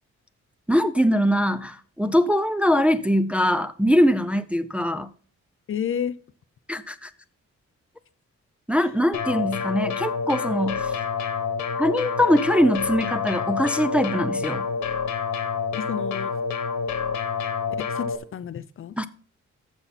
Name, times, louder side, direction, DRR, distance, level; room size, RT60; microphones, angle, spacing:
voice 1, 0.7-5.1 6.7-7.1 8.7-10.9 11.8-14.7 19.0-19.1, equal, 5° right, 0.4 m, -22 dB
voice 2, 5.7-6.2 15.7-16.3 17.8-18.9, left 8 dB, 45° left, 0.5 m, -30 dB
sound 1, 9.1-18.2, left 5 dB, 70° left, 1.4 m, -28 dB
14.0 x 5.5 x 4.1 m
wide cardioid pair, 150°, 29 cm